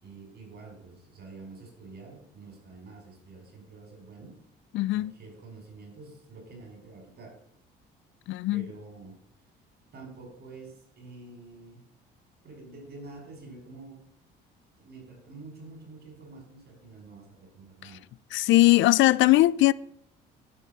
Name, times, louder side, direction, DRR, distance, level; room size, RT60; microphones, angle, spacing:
voice 1, 0.0-4.3 4.9-7.3 8.5-9.2 9.9-11.8 12.4-14.0 14.8-18.0, right 3 dB, 55° right, 5.8 m, -47 dB
voice 2, 4.7-5.1 8.3-8.7 18.3-19.7, left 17 dB, 65° left, 0.4 m, -20 dB
11.5 x 5.5 x 7.4 m
supercardioid pair, 75°, 21 cm